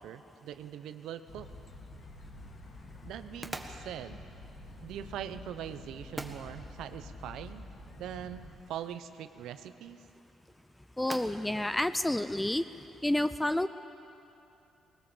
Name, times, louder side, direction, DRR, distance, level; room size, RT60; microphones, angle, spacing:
voice 1, 0.0-1.5 3.0-4.3 4.8-7.7 8.0-10.0, right 10 dB, 85° right, 11 dB, 0.9 m, -42 dB
sound 1, 1.3-8.6, left 2 dB, 70° left, 2.7 m, -48 dB
sound 2, 1.3-13.0, right 1 dB, 10° right, 1.6 m, -50 dB
voice 2, 11.0-12.6 13.0-13.7, left 1 dB, 10° left, 13 dB, 0.5 m, -29 dB
20.5 x 19.5 x 7.3 m, 2.8 s
cardioid pair, 90°, 0 cm